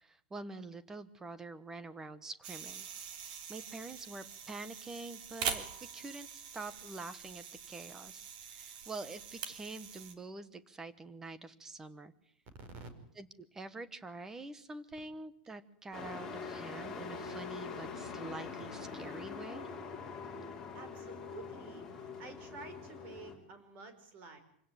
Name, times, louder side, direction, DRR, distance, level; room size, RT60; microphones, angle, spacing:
voice 1, 0.0-2.9 3.1-5.7 5.9-12.1 13.2-19.7, right 3 dB, 10° right, 15 dB, 1.2 m, -46 dB
sound 1, 2.4-10.1, right 7 dB, 60° right, 3.3 m, -44 dB
voice 2, 12.5-12.9 20.7-24.4, right 4 dB, 35° right, 9 dB, 4.8 m, -50 dB
Truck, 15.9-23.3, left 5 dB, 10° left, 5.4 m, -44 dB
26.5 x 17.0 x 9.2 m, 0.67 s
supercardioid pair, 175°, 5 cm